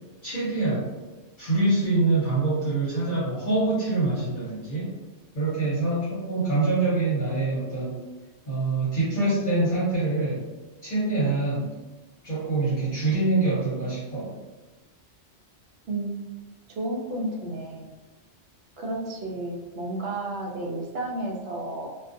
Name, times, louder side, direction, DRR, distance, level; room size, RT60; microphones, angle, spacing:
voice 1, 0.2-0.9 1.4-4.9 5.3-8.0 8.5-10.5 10.8-11.7 12.2-14.4, right 2 dB, 50° left, -10 dB, 0.8 m, -25 dB
voice 2, 15.8-16.2 16.7-17.9 18.8-21.9, right 2 dB, 70° right, -1 dB, 0.8 m, -32 dB
2.4 x 2.2 x 2.5 m, 1.2 s
omnidirectional pair, 1.2 m